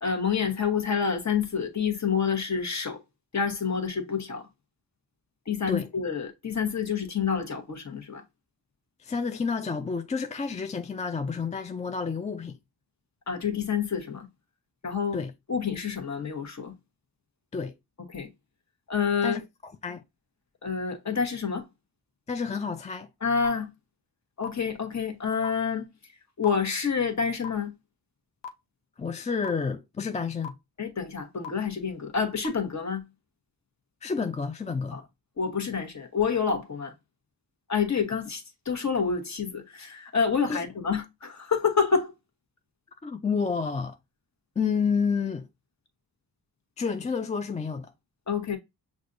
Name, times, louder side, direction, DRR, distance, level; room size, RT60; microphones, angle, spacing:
voice 1, 0.0-3.0 3.3-4.5 5.5-8.2 13.3-14.3 14.8-15.2 15.5-16.7 18.1-18.3 18.9-19.4 20.6-21.7 23.2-23.7 24.4-25.9 26.4-27.7 30.8-33.0 34.9-35.0 35.4-36.9 37.7-42.1 48.3-48.6, left 6 dB, 40° left, 1.1 m, -28 dB
voice 2, 9.0-12.6 15.1-15.3 17.5-17.7 19.2-20.0 22.3-23.1 29.0-30.5 34.0-35.0 40.5-40.6 43.0-44.0 44.6-45.5 46.8-47.9, left 5 dB, 20° left, 0.3 m, -30 dB
sound 1, 23.4-23.5 24.4-24.5 25.4-25.5 26.4-26.5 27.4-27.5 28.4-28.5 29.4-29.5 30.4-30.5 31.4-31.5 32.4-32.5, left 6 dB, 85° left, 0.7 m, -36 dB
6.1 x 2.5 x 2.6 m
cardioid pair, 80°, 42 cm